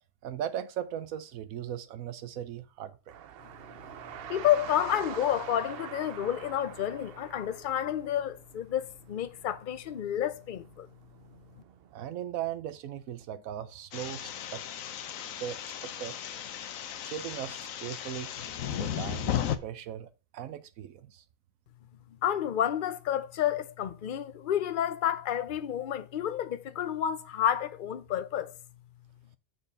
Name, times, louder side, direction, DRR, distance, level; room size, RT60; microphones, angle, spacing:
voice 1, 0.2-3.1 11.9-14.6 15.4-16.2 17.0-18.3 18.8-19.3 19.6-21.2, right 10 dB, 90° right, 1.1 m, -38 dB
sound 1, 3.1-12.1, right 9 dB, 60° right, 0.7 m, -46 dB
voice 2, 4.3-10.9 22.2-28.5, left 10 dB, 50° left, 0.7 m, -30 dB
sound 2, 13.9-19.6, left 10 dB, 80° left, 1.1 m, -35 dB
6.9 x 4.5 x 5.4 m
omnidirectional pair, 1.4 m